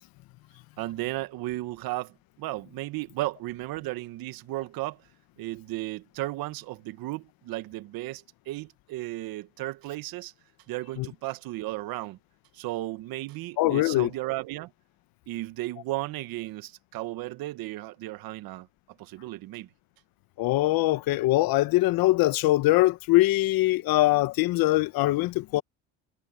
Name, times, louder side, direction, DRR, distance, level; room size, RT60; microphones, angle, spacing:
voice 1, 0.8-5.0 5.4-10.3 10.7-12.2 12.5-14.7 15.3-19.7, right 18 dB, 70° right, 1.5 m, -35 dB
voice 2, 13.6-14.1 20.4-25.6, left 18 dB, 70° left, 1.3 m, -22 dB
supercardioid pair, 75°, 37 cm